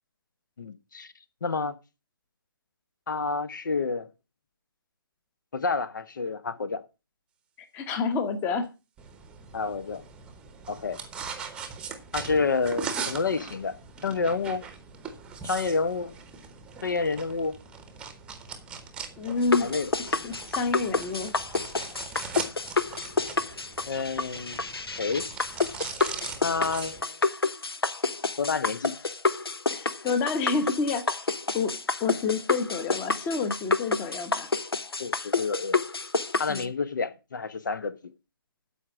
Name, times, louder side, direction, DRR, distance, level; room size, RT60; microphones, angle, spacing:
voice 1, 0.6-1.1 1.4-1.7 3.1-4.1 5.5-6.8 9.5-10.0 10.7-11.0 12.1-13.8 14.0-14.6 15.4-16.1 16.8-17.6 19.5-19.9 23.9-24.7 25.0-25.3 26.4-27.2 28.4-28.9 35.0-35.8 36.4-38.1, left 4 dB, 55° left, 0.9 m, -29 dB
voice 2, 7.7-8.7 19.2-19.7 20.0-21.3 29.7-31.2 31.5-34.5 36.5-36.7, left 4 dB, 15° left, 1.0 m, -29 dB
sound 1, 9.0-27.0, right 6 dB, 5° right, 1.0 m, -40 dB
sound 2, 19.4-36.6, left 4 dB, 80° left, 1.0 m, -29 dB
12.5 x 5.0 x 6.0 m
figure-of-eight pair, 150°, 13 cm